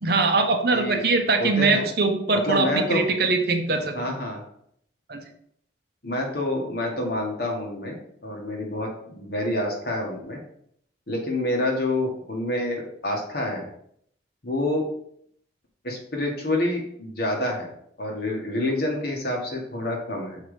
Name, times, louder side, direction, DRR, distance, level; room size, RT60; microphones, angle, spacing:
voice 1, 0.0-3.9 5.1-5.2, right 3 dB, 55° right, 5 dB, 0.9 m, -22 dB
voice 2, 1.4-1.9 2.4-3.0 3.9-4.4 6.0-8.9 9.2-10.4 11.1-13.7 14.4-14.9 15.8-20.4, left 1 dB, 55° left, 0 dB, 1.5 m, -27 dB
7.2 x 3.8 x 4.9 m, 0.68 s
head